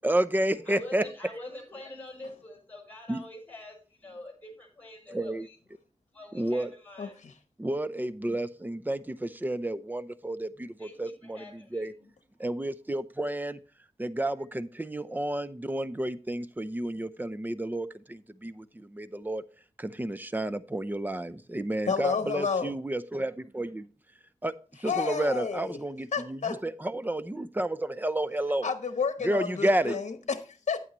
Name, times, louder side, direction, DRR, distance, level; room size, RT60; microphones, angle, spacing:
voice 1, 0.0-1.0 3.1-3.2 5.1-5.5 6.3-6.7 7.6-11.9 12.4-13.6 14.0-19.4 19.8-23.9 24.4-24.5 24.8-28.7 29.2-30.0, right 1 dB, 15° right, 0.6 m, -31 dB
voice 2, 0.6-5.6 6.1-7.2 10.8-12.1, left 1 dB, 15° left, 5.5 m, -45 dB
voice 3, 7.0-7.3 21.9-22.7 24.8-25.8 26.1-26.6 28.6-30.8, left 5 dB, 65° left, 1.0 m, -31 dB
9.4 x 8.6 x 3.1 m
wide cardioid pair, 75°, 12 cm